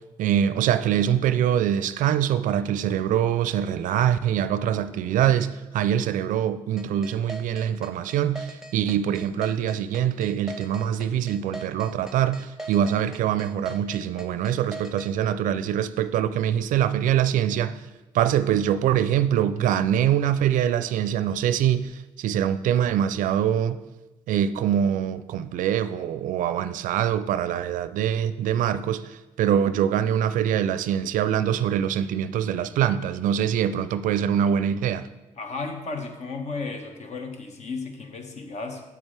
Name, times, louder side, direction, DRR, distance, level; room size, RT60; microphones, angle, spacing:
voice 1, 0.0-17.8 18.1-23.8 24.3-35.1, right 10 dB, 75° right, 0.4 m, -24 dB
sound 1, 6.8-15.1, right 2 dB, 5° right, 0.9 m, -39 dB
voice 2, 35.4-38.8, left 3 dB, 55° left, 1.2 m, -34 dB
7.8 x 7.3 x 3.3 m
supercardioid pair, 65°, 14 cm